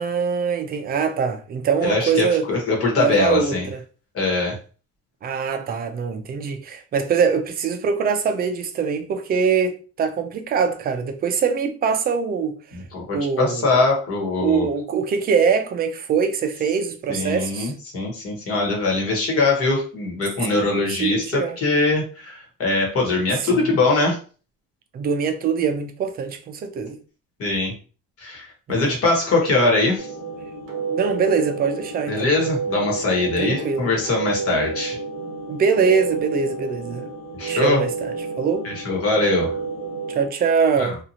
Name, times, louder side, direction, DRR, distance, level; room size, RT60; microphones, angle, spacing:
voice 1, 0.0-2.5 3.0-3.8 5.2-12.6 13.1-13.8 14.4-17.7 20.5-21.6 23.3-23.7 24.9-27.0 28.7-28.9 30.9-32.3 33.4-33.9 35.5-37.1 37.5-38.6 40.1-41.0, right 6 dB, 30° right, 0.4 m, -23 dB
voice 2, 1.8-3.7 4.1-4.6 12.7-14.7 17.1-24.2 27.4-27.7 28.2-30.1 32.1-35.0 37.4-37.8 38.6-39.5 40.8-40.9, left 3 dB, 45° left, 1.3 m, -22 dB
sound 1, 30.0-40.3, right 4 dB, 50° right, 0.8 m, -30 dB
2.7 x 2.4 x 2.8 m
cardioid pair, 150°, 31 cm